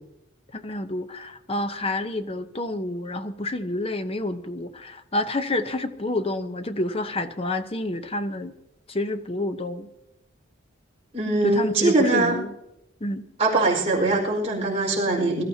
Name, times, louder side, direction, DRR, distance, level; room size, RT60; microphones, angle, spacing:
voice 1, 0.5-8.5 8.9-9.9 11.4-12.5 13.0-13.2, left 2 dB, 30° left, 9 dB, 0.8 m, -28 dB
voice 2, 11.1-12.4 13.4-15.4, right 2 dB, 30° right, -3 dB, 4.8 m, -22 dB
23.0 x 13.5 x 2.8 m, 0.87 s
head